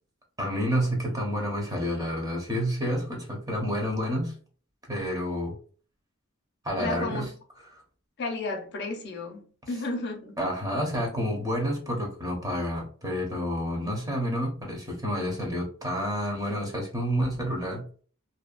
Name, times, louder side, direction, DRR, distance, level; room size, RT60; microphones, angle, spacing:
voice 1, 0.4-4.3 4.9-5.6 6.6-7.3 7.7-7.8 10.4-17.9, equal, 15° right, 0.8 m, -29 dB
voice 2, 6.8-7.3 8.2-10.4, left 3 dB, 55° left, 0.6 m, -33 dB
2.6 x 2.2 x 2.4 m
head